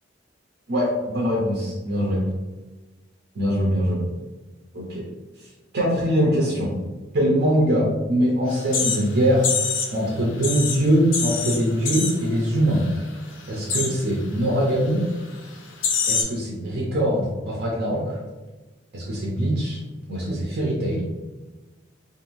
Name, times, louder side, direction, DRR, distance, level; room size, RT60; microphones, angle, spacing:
voice 1, 0.7-2.2 3.4-4.0 4.7-5.1 5.7-6.7 7.1-9.5 9.9-12.8 13.5-15.0 16.1-18.2 18.9-19.8 20.1-21.0, equal, 55° right, -3 dB, 0.6 m, -22 dB
sound 1, 8.5-10.0 10.3-12.4 12.7-13.0 13.3-14.0 14.7-14.8 15.4-15.5 15.8-16.2, left 5 dB, 75° left, 0.6 m, -26 dB
2.5 x 2.5 x 3.0 m, 1.2 s
head